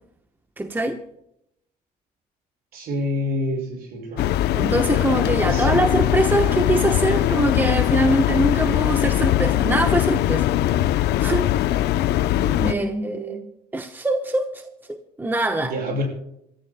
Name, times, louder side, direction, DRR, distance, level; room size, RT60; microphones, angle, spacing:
voice 1, 0.6-1.0 4.5-10.5 11.2-11.5 12.6-13.4 13.7-15.7, right 2 dB, 10° right, 1.0 m, -23 dB
voice 2, 2.7-4.3 5.4-5.8 12.4-13.5 15.6-16.1, left 1 dB, 65° right, 6.4 m, -28 dB
sound 1, 4.2-12.7, left 13 dB, 75° left, 0.6 m, -21 dB
27.5 x 14.0 x 2.2 m
cardioid pair, 110°, 17 cm